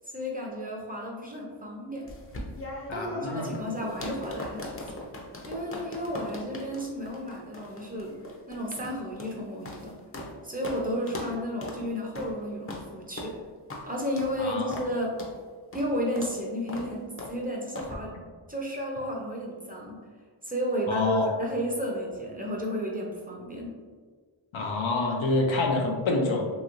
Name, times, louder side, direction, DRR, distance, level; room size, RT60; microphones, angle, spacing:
voice 1, 0.1-2.1 2.9-5.0 5.5-8.1 8.5-9.9 10.4-13.4 13.9-15.1 15.7-17.0 17.3-18.1 18.5-20.0 20.4-23.8, equal, 20° right, -2 dB, 0.6 m, -32 dB
sound 1, 2.1-10.3 10.6-10.8 11.1-11.3 11.6-11.8 12.1-12.3 12.7-12.8 13.2-13.3 13.7-13.8 14.2-14.3 14.7-14.9 15.2-15.3 15.7-15.9 16.2-16.3 16.7-16.9 17.2-17.3 17.7-17.9, left 1 dB, 30° left, 0.6 m, -39 dB
voice 2, 2.9-3.6 14.4-14.7 20.9-21.3 24.5-26.5, left 2 dB, 80° left, 1 dB, 0.7 m, -27 dB
3.0 x 2.9 x 2.5 m, 1.5 s
cardioid pair, 60°, 47 cm